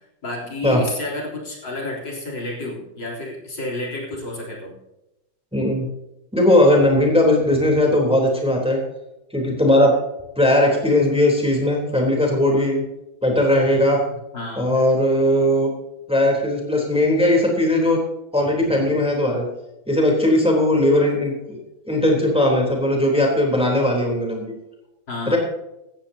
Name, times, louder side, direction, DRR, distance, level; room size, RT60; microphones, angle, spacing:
voice 1, 0.2-4.8 14.3-14.8 25.1-25.4, left 2 dB, 60° left, -3 dB, 4.4 m, -30 dB
voice 2, 5.5-5.9 6.3-8.8 9.3-10.0 10.4-12.8 13.2-14.0 14.6-15.7 16.1-18.0 18.3-19.5 19.9-21.6 21.9-24.5 25.3-25.4, left 1 dB, 5° right, 0 dB, 3.5 m, -18 dB
15.5 x 15.0 x 2.9 m, 0.93 s
omnidirectional pair, 2.2 m